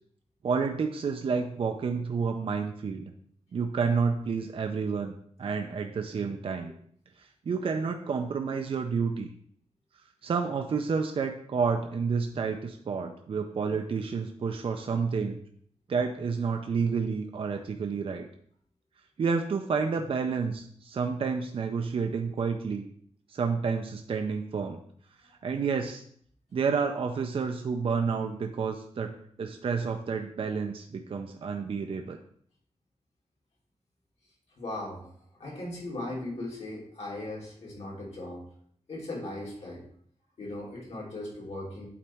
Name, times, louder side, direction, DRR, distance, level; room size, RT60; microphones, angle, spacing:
voice 1, 0.4-3.1 3.5-6.7 7.5-9.3 10.2-15.4 15.9-18.3 19.2-22.9 23.3-24.8 25.4-26.0 26.5-32.2, right 5 dB, 55° right, 5 dB, 0.5 m, -30 dB
voice 2, 34.6-38.4 38.9-39.8 40.4-41.9, left 1 dB, 70° left, -3 dB, 2.4 m, -38 dB
8.5 x 4.1 x 3.4 m, 0.62 s
wide cardioid pair, 175°, 11 cm